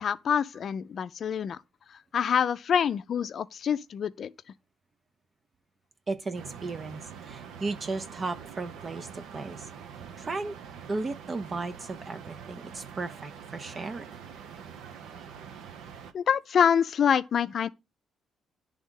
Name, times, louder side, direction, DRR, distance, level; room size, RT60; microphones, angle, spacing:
voice 1, 0.0-1.6 2.1-4.3 16.1-17.7, left 8 dB, 55° left, 0.4 m, -26 dB
voice 2, 6.1-9.7 10.2-10.6 10.9-14.1, right 3 dB, 35° right, 0.5 m, -35 dB
sound 1, 6.3-16.1, right 7 dB, 85° right, 0.7 m, -45 dB
10.0 x 3.5 x 3.7 m
cardioid pair, 90°, 0 cm